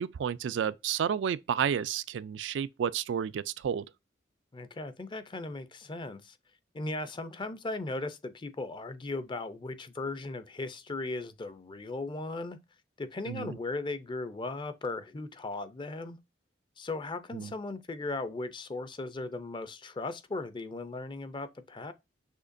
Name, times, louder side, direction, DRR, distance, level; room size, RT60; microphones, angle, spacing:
voice 1, 0.0-3.8 13.3-13.6 17.3-17.5, right 8 dB, 75° right, 0.3 m, -31 dB
voice 2, 4.5-6.4 6.7-12.6 13.0-16.2 16.8-21.9, left 2 dB, 25° left, 0.5 m, -37 dB
6.4 x 2.8 x 2.5 m
head